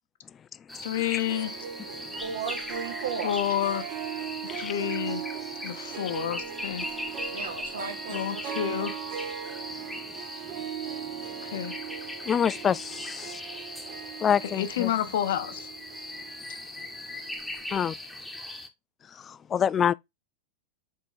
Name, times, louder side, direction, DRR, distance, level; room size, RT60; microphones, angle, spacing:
sound 1, 0.7-18.7, left 2 dB, 5° left, 1.2 m, -40 dB
voice 1, 0.8-1.5 3.2-3.9 4.4-5.2 5.6-6.9 8.1-9.0 11.4-11.8 14.4-15.7, left 11 dB, 55° left, 0.8 m, -29 dB
Harp, 1.0-17.7, right 9 dB, 35° right, 1.0 m, -39 dB
voice 2, 2.2-3.4 7.3-8.4, right 6 dB, 65° right, 1.7 m, -35 dB
voice 3, 12.3-13.4 14.2-14.9 17.7-17.9 19.1-19.9, left 8 dB, 25° left, 0.3 m, -26 dB
6.5 x 4.6 x 3.9 m
figure-of-eight pair, 90°, 0 cm